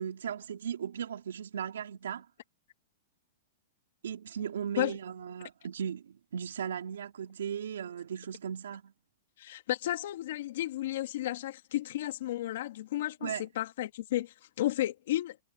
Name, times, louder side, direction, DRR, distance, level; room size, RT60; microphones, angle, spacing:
voice 1, 0.0-2.3 4.0-8.9 13.2-13.4, right 8 dB, 90° right, 3.1 m, -37 dB
voice 2, 9.4-15.4, left 14 dB, 65° left, 2.4 m, -33 dB
hypercardioid pair, 145°, 0 cm